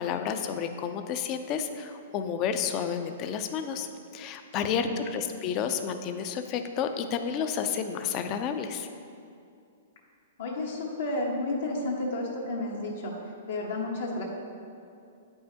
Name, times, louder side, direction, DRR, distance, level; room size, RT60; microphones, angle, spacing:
voice 1, 0.0-3.9 4.1-8.9, left 7 dB, 35° left, 8 dB, 0.5 m, -31 dB
voice 2, 4.6-5.0 10.4-14.2, left 2 dB, 70° left, -2 dB, 1.1 m, -32 dB
8.7 x 5.5 x 2.8 m, 2.5 s
hypercardioid pair, 130°, 0 cm